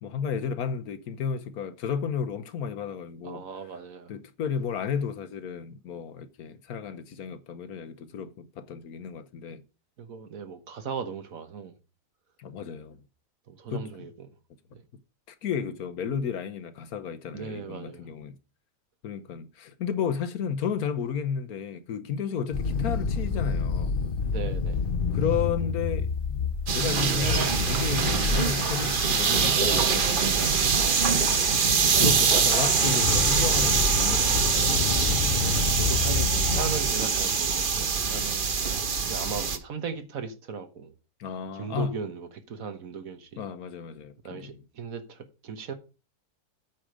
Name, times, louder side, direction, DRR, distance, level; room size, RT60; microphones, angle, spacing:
voice 1, 0.0-3.4 4.1-9.6 12.4-13.0 13.7-13.8 15.3-18.3 19.0-24.0 25.1-26.1 26.7-30.6 32.0-35.6 41.2-42.0 43.4-44.6, left 7 dB, 70° left, 1.3 m, -33 dB
voice 2, 3.2-4.1 10.0-11.7 13.5-14.3 14.7-14.8 17.3-18.1 24.2-24.9 31.3-31.6 35.7-40.9 41.5-43.4 44.2-45.7, right 6 dB, 60° right, 1.5 m, -38 dB
sound 1, 22.5-29.7 32.5-36.9, left 5 dB, 50° left, 0.6 m, -29 dB
sound 2, 26.7-39.6, right 5 dB, 40° right, 0.8 m, -24 dB
8.8 x 5.0 x 6.3 m
omnidirectional pair, 1.7 m